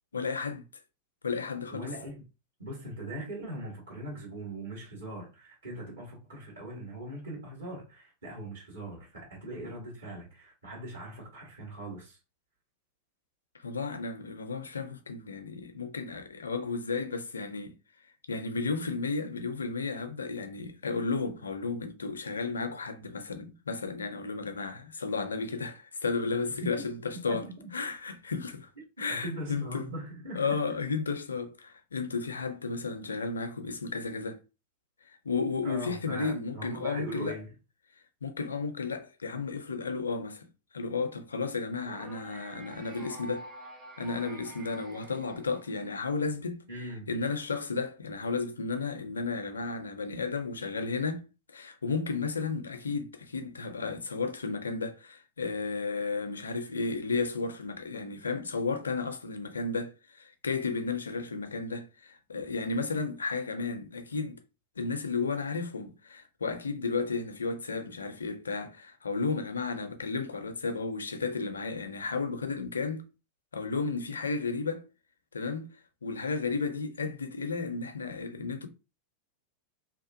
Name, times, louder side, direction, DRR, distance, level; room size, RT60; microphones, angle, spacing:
voice 1, 0.1-0.6 1.2-1.9 13.6-17.7 18.3-27.5 27.7-28.7 29.0-29.9 30.3-34.4 35.2-37.4 38.2-40.5 40.7-43.5 44.0-46.6 47.1-64.4 64.8-73.0 73.5-74.8 75.3-75.7 76.0-78.7, left 4 dB, 75° left, 0.4 m, -33 dB
voice 2, 1.7-2.2 2.6-12.2 26.6-26.9 27.3-27.7 29.1-30.6 35.6-37.5 46.7-47.1, right 1 dB, 65° right, 1.4 m, -40 dB
sound 1, 41.9-46.0, right 1 dB, 20° right, 0.6 m, -48 dB
2.8 x 2.4 x 2.5 m
figure-of-eight pair, 90°, 0 cm